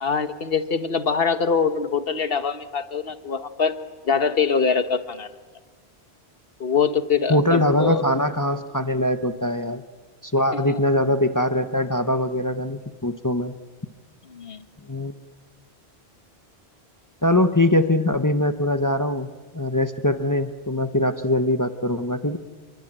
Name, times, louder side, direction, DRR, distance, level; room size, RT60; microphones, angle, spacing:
voice 1, 0.0-3.7 4.0-5.3 6.6-8.0 10.5-10.8 14.3-14.6, left 6 dB, 60° left, 10 dB, 1.5 m, -23 dB
voice 2, 7.3-9.8 10.2-13.5 14.9-15.2 17.2-19.3 19.5-22.4, left 1 dB, 20° left, 9 dB, 0.9 m, -22 dB
29.0 x 23.0 x 8.9 m, 1.4 s
omnidirectional pair, 1.1 m